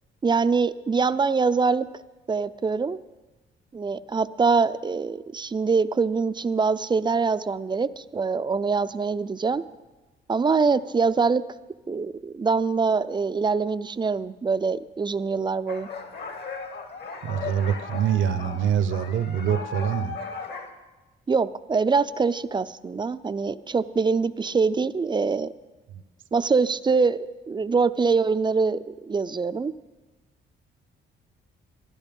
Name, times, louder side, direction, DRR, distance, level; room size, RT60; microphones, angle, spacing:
voice 1, 0.2-1.9 2.3-3.0 3.7-9.6 10.3-11.4 11.9-15.9 21.3-25.5 26.3-29.7, right 4 dB, 25° right, 14 dB, 0.4 m, -24 dB
sound 1, 15.7-20.7, left 4 dB, 55° left, 1.7 m, -36 dB
voice 2, 17.2-20.2, right 8 dB, 75° right, 12 dB, 0.9 m, -25 dB
13.0 x 12.0 x 5.3 m, 1.2 s
cardioid pair, 90°, 20 cm